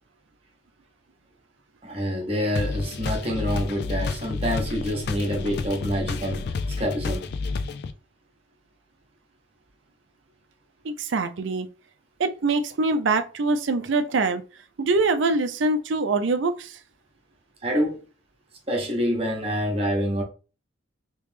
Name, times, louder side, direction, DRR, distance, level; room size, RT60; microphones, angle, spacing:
voice 1, 1.8-7.3 17.6-18.0 18.7-20.2, equal, 30° right, 0.9 m, -27 dB
sound 1, 2.6-7.9, left 4 dB, 55° left, 0.3 m, -30 dB
voice 2, 10.8-11.7 12.2-14.4 14.8-16.7, right 3 dB, 70° right, 0.5 m, -24 dB
3.2 x 3.0 x 3.2 m
head